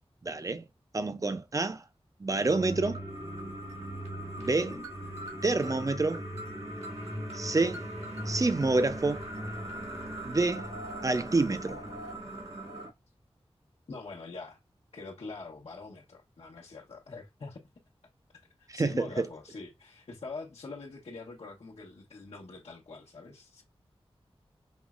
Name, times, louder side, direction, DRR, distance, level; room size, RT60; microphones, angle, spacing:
voice 1, 0.2-0.6 0.9-1.8 2.2-3.0 4.4-4.8 5.4-6.2 7.3-7.8 8.3-9.2 10.2-10.7 11.0-11.8 18.7-19.3, right 3 dB, 35° right, 0.5 m, -28 dB
sound 1, 2.3-12.9, right 1 dB, 90° right, 1.5 m, -39 dB
voice 2, 4.4-4.8 13.9-14.6 14.9-17.6 18.6-23.6, left 3 dB, 85° left, 0.9 m, -44 dB
5.4 x 3.0 x 2.4 m
wide cardioid pair, 80°, 10 cm